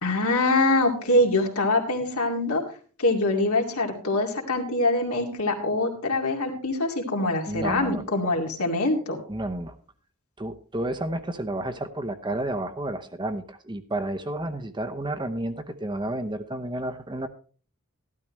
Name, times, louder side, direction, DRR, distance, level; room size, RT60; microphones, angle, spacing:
voice 1, 0.0-2.6 3.0-9.2, left 2 dB, 85° left, 1 dB, 2.4 m, -24 dB
voice 2, 7.5-8.0 9.3-9.8 10.4-17.3, right 1 dB, 20° right, 8 dB, 0.8 m, -31 dB
13.0 x 12.0 x 3.1 m, 0.40 s
head